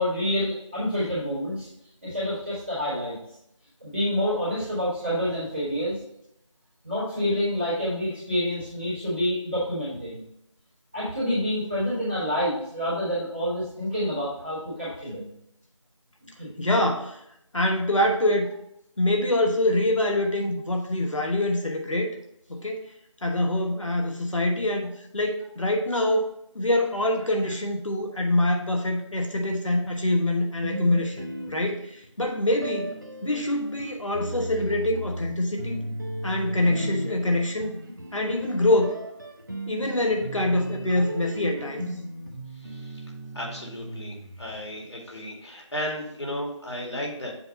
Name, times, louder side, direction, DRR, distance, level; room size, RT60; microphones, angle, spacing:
voice 1, 0.0-1.7 2.0-3.2 3.8-6.0 6.8-10.2 10.9-15.3 16.4-16.5, equal, ahead, -26 dB, 1.0 m, -27 dB
voice 2, 16.6-17.2 17.5-18.5 19.0-22.1 22.5-22.9 23.2-26.3 26.5-35.8 36.2-37.8 38.1-39.0 39.7-41.9, left 1 dB, 75° left, 2 dB, 1.1 m, -25 dB
sound 1, 30.6-32.1 32.6-44.8, right 1 dB, 40° right, 0.8 m, -36 dB
voice 3, 42.5-43.1 43.3-47.3, left 1 dB, 60° left, -1 dB, 2.0 m, -35 dB
7.7 x 2.7 x 5.2 m, 0.76 s
figure-of-eight pair, 175°, 16 cm